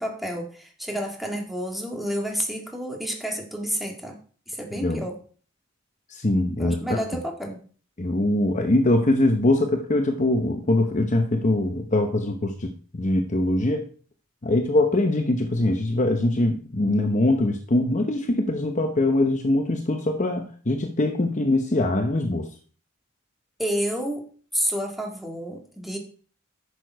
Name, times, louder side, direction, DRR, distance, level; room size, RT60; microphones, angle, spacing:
voice 1, 0.0-4.2 4.5-5.2 6.6-7.6 23.6-24.3 24.5-26.0, equal, ahead, 1.9 m, -30 dB
voice 2, 6.1-7.0 8.0-13.9 14.4-22.5, left 1 dB, 35° left, 0.8 m, -22 dB
10.5 x 6.6 x 4.7 m
head